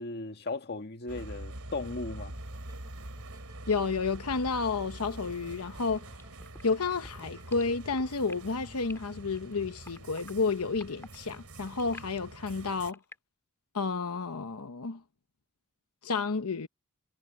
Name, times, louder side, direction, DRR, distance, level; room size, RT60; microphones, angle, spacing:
voice 1, 0.0-2.3, left 3 dB, 50° left, 1.8 m, -37 dB
sound 1, 1.1-12.9, right 1 dB, 70° right, 3.9 m, -45 dB
sound 2, 2.2-8.0, equal, 20° right, 2.8 m, -54 dB
voice 2, 3.7-6.0 6.6-13.0 13.7-15.0 16.0-16.7, left 4 dB, 90° left, 1.0 m, -31 dB
sound 3, 6.1-13.2, left 2 dB, 10° left, 2.2 m, -50 dB
head